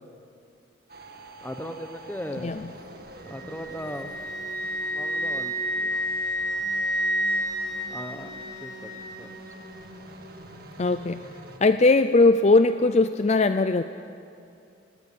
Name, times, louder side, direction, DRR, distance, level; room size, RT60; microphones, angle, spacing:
sound 1, 0.9-11.6, right 1 dB, 50° right, 2.0 m, -44 dB
voice 1, 1.4-2.7 3.3-4.1 4.9-5.9 7.9-9.3, equal, 10° left, 7 dB, 1.1 m, -38 dB
voice 2, 2.4-2.7 10.8-11.3 11.6-13.8, left 3 dB, 35° left, 10 dB, 0.5 m, -20 dB
Wind instrument woodwind instrument, 3.3-9.3, equal, 80° left, 2.9 m, -30 dB
20.0 x 18.0 x 8.6 m, 2.6 s
head